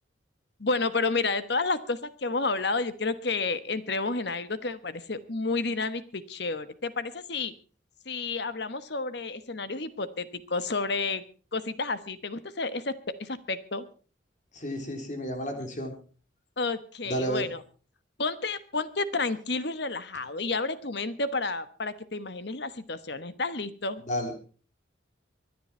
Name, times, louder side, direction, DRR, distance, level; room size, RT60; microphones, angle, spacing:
voice 1, 0.6-7.5 8.1-11.2 11.5-12.9 13.2-13.8 16.6-17.6 18.2-24.0, left 3 dB, 60° left, 13 dB, 1.2 m, -30 dB
voice 2, 14.5-15.9 17.0-17.4 24.1-24.4, equal, 40° left, 5 dB, 3.6 m, -31 dB
24.0 x 10.5 x 4.4 m, 0.38 s
head